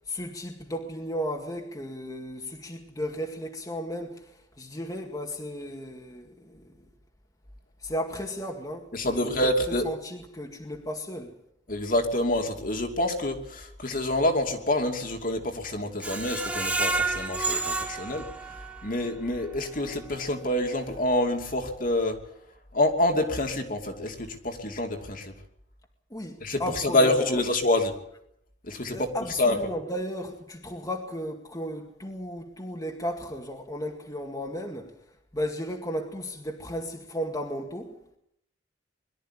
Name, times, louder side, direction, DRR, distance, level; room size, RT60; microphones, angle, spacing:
voice 1, 0.0-6.9 7.8-9.3 9.7-11.4 26.1-27.4 28.9-35.0 35.3-38.0, equal, 20° left, 2.0 m, -35 dB
voice 2, 8.9-9.9 11.7-18.3 18.8-22.2 22.7-25.3 26.4-27.9 28.7-29.1 29.4-29.6, left 1 dB, 45° left, 2.8 m, -27 dB
Screech, 16.0-19.0 19.4-19.5 19.9-20.0, right 3 dB, 5° right, 1.4 m, -30 dB
22.5 x 13.5 x 9.9 m
head